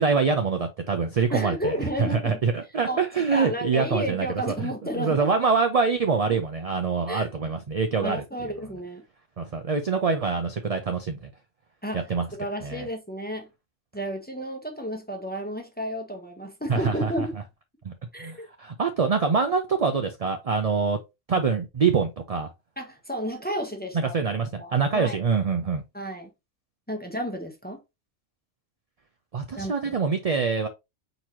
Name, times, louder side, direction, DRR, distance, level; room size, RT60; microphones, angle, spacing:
voice 1, 0.0-8.2 9.4-11.3 11.9-12.3 12.6-12.9 16.7-17.3 17.8-17.9 18.2-21.0 21.3-22.5 23.9-25.8 29.3-30.7, right 5 dB, 50° right, 0.5 m, -25 dB
voice 2, 1.3-2.4 2.9-3.1 3.3-5.2 7.1-7.3 8.0-9.0 11.8-12.1 12.3-13.5 13.9-17.3 18.1-18.5 22.8-24.1 24.6-25.2 25.9-26.3 26.9-27.8 29.6-30.0, equal, 10° left, 0.9 m, -32 dB
4.5 x 3.9 x 2.8 m
omnidirectional pair, 1.3 m